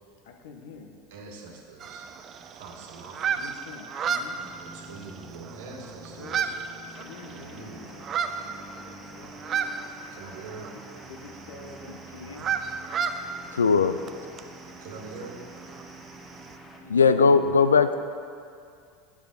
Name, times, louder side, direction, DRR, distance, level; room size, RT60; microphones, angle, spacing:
voice 1, 0.2-1.0 3.4-4.5 6.2-6.5 6.8-8.0 8.3-9.8 11.1-12.0 16.8-17.9, left 4 dB, 70° left, 4 dB, 0.9 m, -47 dB
voice 2, 1.1-2.1 2.5-3.4 4.6-6.6 7.2-7.9 10.1-10.7 14.8-15.3, right 4 dB, 70° right, 0 dB, 1.5 m, -43 dB
sound 1, 1.8-16.6, right 6 dB, 40° right, 0.5 m, -34 dB
sound 2, 4.1-17.1, right 2 dB, 15° right, 0.8 m, -48 dB
sound 3, 6.9-16.8, equal, 10° left, 1.2 m, -50 dB
voice 3, 11.9-12.3 13.5-13.9 16.9-17.9, left 5 dB, 90° left, 11 dB, 0.3 m, -20 dB
10.5 x 4.9 x 5.1 m, 2.3 s
hypercardioid pair, 80°, 0 cm